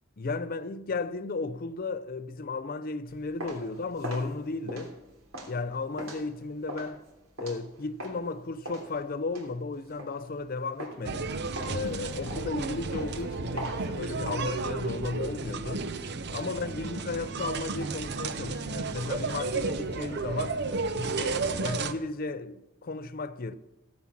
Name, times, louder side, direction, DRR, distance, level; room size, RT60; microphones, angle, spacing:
voice 1, 0.2-5.0 5.5-7.0 7.4-11.3 11.6-15.9 16.3-20.6 20.9-23.5, left 3 dB, 40° left, 0.5 m, -34 dB
sound 1, 3.1-8.3 8.7-10.5 10.8-11.2 11.6-14.4, equal, 75° right, 3.2 m, -41 dB
sound 2, 11.0-21.9, right 4 dB, 50° right, 0.7 m, -33 dB
15.5 x 8.7 x 5.9 m
head